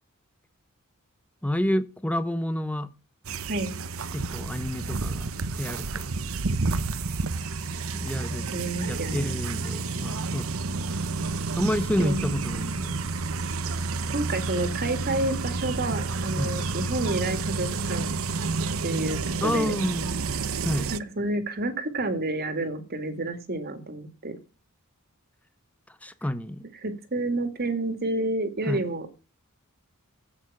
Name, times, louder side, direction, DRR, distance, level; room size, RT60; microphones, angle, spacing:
voice 1, 1.4-2.9 4.1-5.3 5.6-6.1 7.9-8.5 8.9-10.5 11.6-13.0 16.4-16.5 19.4-20.2 20.6-20.9 26.0-26.6 28.7-28.8, equal, 5° left, 0.8 m, -29 dB
sound 1, 3.2-21.0, right 4 dB, 70° right, 0.9 m, -30 dB
voice 2, 8.5-9.4 12.0-12.3 14.0-18.1 18.8-19.7 20.9-24.4 26.8-29.1, right 2 dB, 45° right, 2.1 m, -29 dB
13.5 x 8.7 x 6.0 m
head